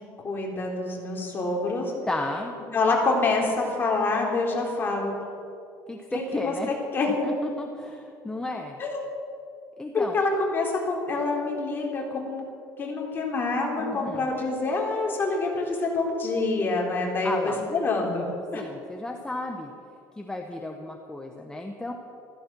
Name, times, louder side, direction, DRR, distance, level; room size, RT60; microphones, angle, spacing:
voice 1, 0.2-1.9 2.7-5.1 6.1-7.2 8.8-9.0 9.9-12.4 12.8-18.3 18.5-18.6, left 3 dB, 25° left, -1 dB, 3.7 m, -26 dB
voice 2, 2.1-2.5 5.9-6.7 7.2-8.8 9.8-10.2 13.8-14.3 17.2-17.6 18.5-19.7 20.2-21.9, left 2 dB, 10° left, 3 dB, 1.1 m, -33 dB
15.0 x 14.5 x 6.2 m, 2.6 s
cardioid pair, 135°, 8 cm